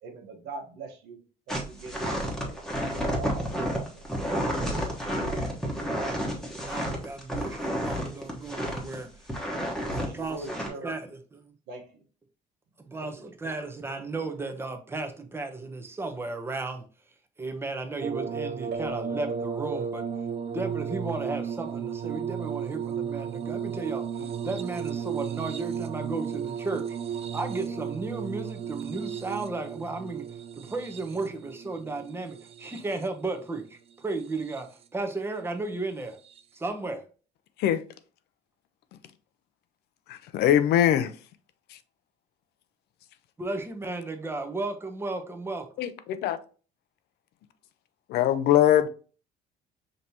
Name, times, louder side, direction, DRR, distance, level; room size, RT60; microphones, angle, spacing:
voice 1, 0.0-1.2 1.5-2.6 2.9-4.0 4.4-4.7 5.1-5.4 5.9-6.3 9.0-9.1 10.0-10.9 11.7-12.0 13.0-13.1, right 3 dB, 80° right, 1.1 m, -42 dB
sound 1, 1.5-9.0 9.3-10.1 10.4-10.7, equal, 5° left, 1.1 m, -30 dB
voice 2, 6.5-9.1 9.9-10.5 10.8-11.5 12.8-16.9 17.4-20.1 20.5-27.0 27.3-30.3 30.5-36.2 36.5-37.1 43.4-45.7, right 3 dB, 15° right, 0.7 m, -34 dB
sound 2, 18.0-33.2 34.1-34.8 36.2-36.4, right 8 dB, 35° right, 0.4 m, -34 dB
sound 3, 18.7-21.7, right 1 dB, 65° right, 0.7 m, -41 dB
voice 3, 40.1-41.1 45.8-46.4 48.1-48.9, left 11 dB, 75° left, 0.5 m, -22 dB
5.2 x 2.9 x 2.8 m
cardioid pair, 110°, 17 cm